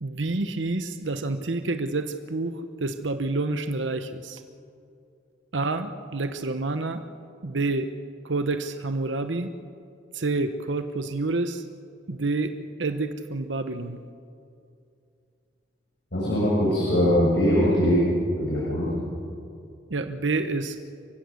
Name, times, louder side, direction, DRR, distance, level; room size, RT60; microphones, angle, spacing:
voice 1, 0.0-4.4 5.5-7.0 7.4-7.9 8.2-9.5 10.1-11.6 12.1-14.0 19.9-20.8, right 3 dB, 85° right, 9 dB, 1.0 m, -28 dB
voice 2, 16.1-18.9, equal, 70° left, -7 dB, 7.1 m, -22 dB
30.0 x 16.5 x 6.5 m, 2.5 s
head